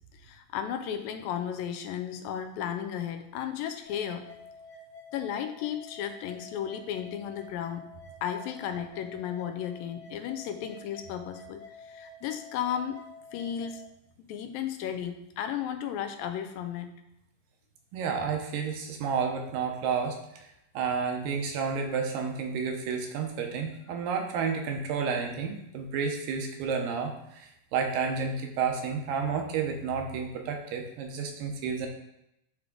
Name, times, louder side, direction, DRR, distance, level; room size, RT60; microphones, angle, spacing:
voice 1, 0.1-4.2 5.1-7.8 8.2-13.0 13.3-13.8 14.3-16.9, left 9 dB, 85° left, 7 dB, 2.4 m, -34 dB
sound 1, 3.8-13.9, left 2 dB, 55° left, 1.1 m, -49 dB
voice 2, 17.9-20.5 20.7-31.9, right 6 dB, 80° right, 3 dB, 2.5 m, -31 dB
10.5 x 3.5 x 3.8 m, 0.82 s
omnidirectional pair, 4.0 m